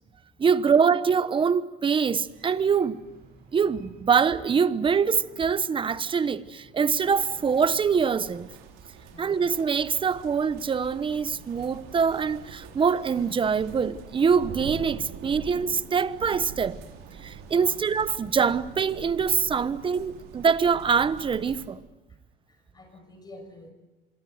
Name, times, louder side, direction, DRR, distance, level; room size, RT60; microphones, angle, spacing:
voice 1, 0.4-3.0 3.5-8.5 9.2-16.8 17.2-21.8, right 6 dB, 25° right, 1.0 m, -24 dB
sound 1, 2.2-21.8, right 5 dB, 50° right, 6.7 m, -53 dB
sound 2, 7.0-21.7, right 6 dB, 75° right, 4.1 m, -44 dB
voice 2, 9.0-9.4 17.5-17.8 22.5-23.7, left 1 dB, 20° left, 6.0 m, -49 dB
26.0 x 23.0 x 7.9 m
cardioid pair, 135°, 21 cm